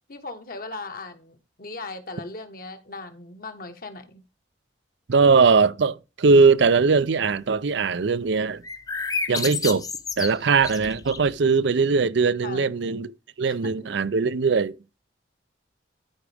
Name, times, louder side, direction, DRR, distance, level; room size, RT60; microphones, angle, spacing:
voice 1, 0.1-4.2 12.4-12.8 13.5-13.9, left 3 dB, 45° left, 1.3 m, -38 dB
voice 2, 5.1-8.6 9.3-9.9 10.2-13.1 13.4-14.7, right 4 dB, 65° right, 0.5 m, -20 dB
sound 1, 8.6-11.4, left 4 dB, 20° left, 0.8 m, -30 dB
13.0 x 5.1 x 3.4 m
head